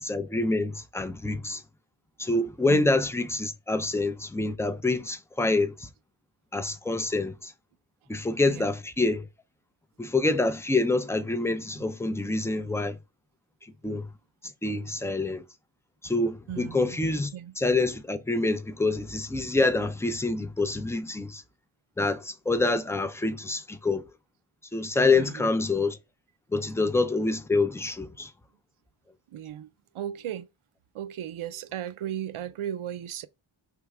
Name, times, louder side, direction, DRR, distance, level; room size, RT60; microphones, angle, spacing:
voice 1, 0.0-1.6 2.2-5.9 6.5-7.5 8.1-9.3 10.0-13.0 13.8-14.1 14.6-15.4 16.0-17.3 17.6-21.4 22.0-24.0 24.7-26.0 26.5-28.3, left 2 dB, 5° left, 0.4 m, -26 dB
voice 2, 16.5-17.0 17.3-17.5 25.1-25.5 29.3-29.7 29.9-30.5 30.9-33.3, right 10 dB, 75° right, 0.6 m, -36 dB
3.4 x 3.2 x 4.8 m
wide cardioid pair, 100°, 50 cm